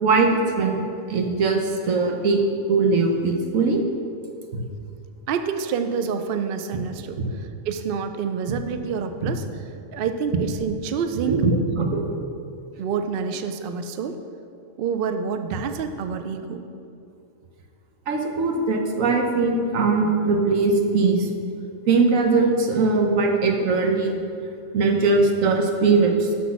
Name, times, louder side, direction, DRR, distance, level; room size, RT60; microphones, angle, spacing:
voice 1, 0.0-0.8 1.1-2.4 2.7-3.8 4.5-4.6 7.2-7.3 8.5-8.6 9.2-9.3 11.3-12.2 18.1-21.3 21.9-24.2 24.7-26.3, right 3 dB, 85° right, 3 dB, 1.3 m, -20 dB
voice 2, 5.3-11.4 12.8-14.2 14.8-16.7, right 6 dB, 65° right, 8 dB, 0.6 m, -28 dB
6.2 x 6.1 x 5.8 m, 2.5 s
omnidirectional pair, 1.3 m